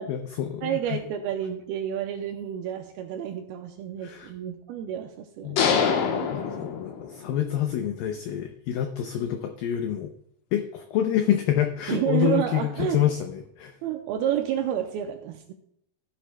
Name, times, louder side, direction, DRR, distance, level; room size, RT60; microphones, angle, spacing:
voice 1, 0.1-1.0 4.0-4.3 5.4-5.6 6.3-10.1 10.5-13.8, left 10 dB, 90° left, 5 dB, 2.0 m, -27 dB
voice 2, 0.6-5.6 11.9-13.0 13.8-15.5, right 10 dB, 85° right, 4 dB, 2.2 m, -29 dB
sound 1, 5.6-7.4, left 6 dB, 70° left, 2.1 m, -25 dB
15.5 x 8.3 x 2.2 m, 0.72 s
omnidirectional pair, 4.9 m